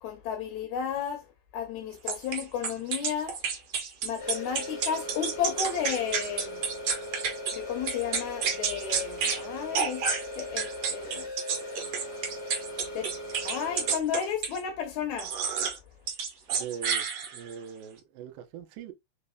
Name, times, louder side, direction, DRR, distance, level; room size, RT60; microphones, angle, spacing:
voice 1, 0.0-1.2 1.5-3.4 4.0-6.6 7.5-10.0 10.4-11.2 12.9-13.1 13.4-15.3, left 8 dB, 75° left, 1.8 m, -33 dB
sound 1, 2.1-7.6 7.9-9.4 9.7-14.6 15.2-15.8 16.1-17.5, right 6 dB, 55° right, 1.9 m, -30 dB
sound 2, 4.2-14.0, left 1 dB, 40° left, 1.4 m, -39 dB
voice 2, 16.5-17.1 17.3-18.9, right 8 dB, 75° right, 2.4 m, -41 dB
5.4 x 4.0 x 2.3 m
omnidirectional pair, 4.2 m